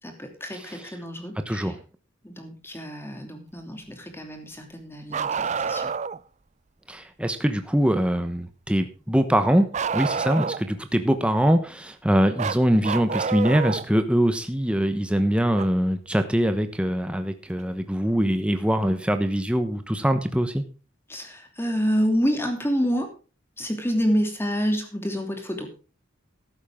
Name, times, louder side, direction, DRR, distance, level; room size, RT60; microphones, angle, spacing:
voice 1, 0.0-1.7 2.2-5.9 10.3-10.5 21.1-23.1 23.6-25.7, equal, 10° left, 5 dB, 2.9 m, -28 dB
voice 2, 1.5-1.8 6.9-9.7 9.9-20.6, equal, 5° right, 8 dB, 1.1 m, -23 dB
Bark, 5.1-6.2 9.7-10.8 12.4-13.9 15.6-15.7 17.6-17.7 18.8-18.9, right 5 dB, 35° right, 0.5 m, -28 dB
14.0 x 11.5 x 3.7 m, 0.34 s
head